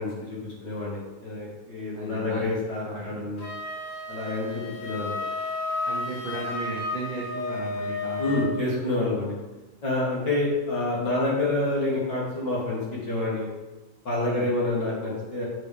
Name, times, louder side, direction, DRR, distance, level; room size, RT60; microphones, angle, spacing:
voice 1, 0.0-3.4 4.1-5.2 8.2-9.3 9.8-12.8 13.1-13.5 14.0-15.4, left 2 dB, 45° left, -6 dB, 1.8 m, -28 dB
voice 2, 1.9-2.5 2.9-3.2 5.8-8.5 14.2-14.5, right 2 dB, 70° right, -5 dB, 1.1 m, -35 dB
Wind instrument woodwind instrument, 3.4-8.6, left 2 dB, 70° left, 2.5 m, -32 dB
8.6 x 4.1 x 3.4 m, 1.1 s
omnidirectional pair, 3.4 m